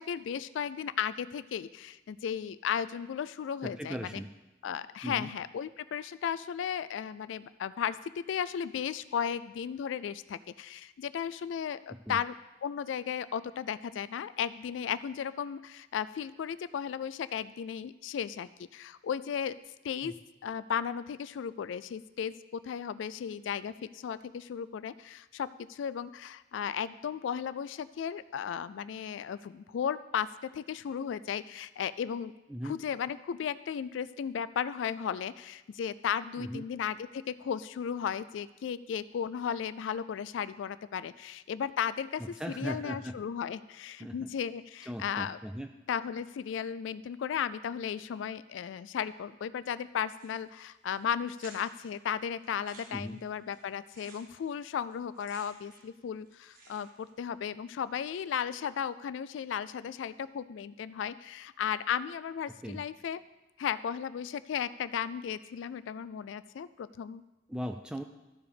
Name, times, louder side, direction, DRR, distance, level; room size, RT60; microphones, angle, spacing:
voice 1, 0.0-4.1 4.6-12.3 12.6-19.6 19.8-20.1 20.4-22.3 22.6-30.3 30.5-32.3 32.7-45.4 45.9-63.2 63.6-67.2, left 8 dB, 85° left, 16 dB, 0.3 m, -35 dB
voice 2, 3.6-4.3 5.0-5.3 12.1-12.2 20.0-20.1 32.5-32.8 36.4-36.6 42.2-43.2 44.0-44.3 44.8-45.7 52.9-53.2 62.6-62.8 67.5-68.0, equal, 5° right, 6 dB, 0.3 m, -38 dB
sound 1, 50.1-50.6 50.9-51.0 51.3-51.9 52.4-56.0 56.2-57.1, right 2 dB, 50° right, 1.7 m, -54 dB
13.5 x 4.8 x 5.1 m, 1.1 s
head